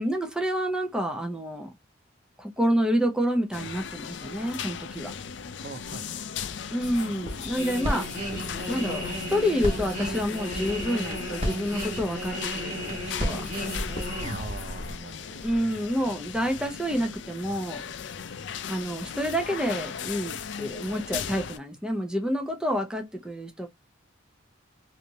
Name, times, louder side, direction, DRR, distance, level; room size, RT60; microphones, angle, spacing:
voice 1, 0.0-1.7 2.4-5.1 6.7-8.1 8.7-13.4 15.4-17.8 18.7-23.7, equal, 5° right, 0.8 m, -28 dB
sound 1, 3.5-21.6, left 7 dB, 65° left, 0.5 m, -37 dB
voice 2, 5.6-6.7 8.0-8.1 14.2-15.4, right 3 dB, 50° right, 0.5 m, -42 dB
sound 2, 6.8-14.9, left 2 dB, 40° left, 1.4 m, -43 dB
sound 3, 7.6-15.0 15.4-15.6, equal, 35° right, 1.8 m, -33 dB
3.4 x 2.7 x 2.8 m
head